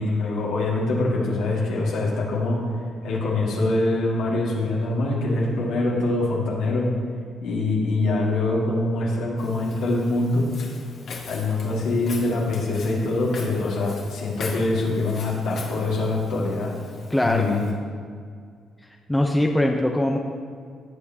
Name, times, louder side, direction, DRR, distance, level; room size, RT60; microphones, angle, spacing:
voice 1, 0.0-2.6 3.0-6.9 7.4-10.5 11.3-16.8 17.2-17.7, left 2 dB, 85° left, -4 dB, 2.1 m, -24 dB
Walk footsteps, 9.4-17.7, left 3 dB, 65° left, 2.1 m, -41 dB
voice 2, 17.1-17.4 19.1-20.2, left 1 dB, 10° left, 1 dB, 0.7 m, -21 dB
17.0 x 6.9 x 2.9 m, 2.1 s
cardioid pair, 90°, 0 cm